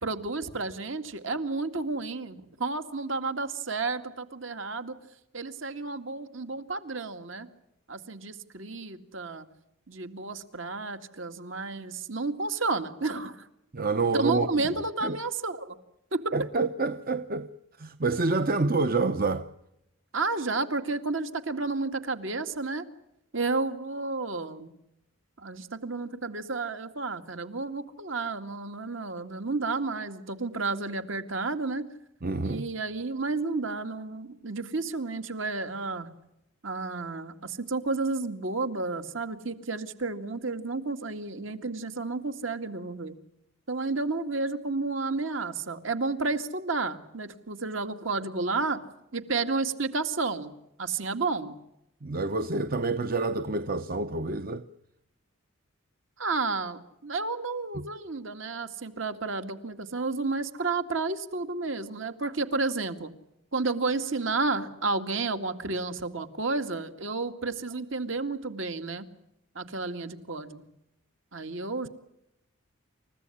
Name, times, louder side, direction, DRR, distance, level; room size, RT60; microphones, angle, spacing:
voice 1, 0.0-5.0 5.3-7.5 7.9-9.5 9.9-13.5 14.1-15.8 16.1-16.4 20.1-22.9 23.3-24.7 25.4-31.8 32.4-36.1 36.6-43.2 43.7-48.8 49.1-50.5 50.8-51.6 56.2-63.1 63.5-69.0 69.6-70.7 71.3-71.9, right 3 dB, 65° right, 2.2 m, -31 dB
voice 2, 13.7-14.5 15.0-15.2 16.3-17.5 17.8-19.5 32.2-32.6 52.0-54.7 57.7-57.8, right 3 dB, 45° right, 0.8 m, -27 dB
29.0 x 15.5 x 9.9 m
head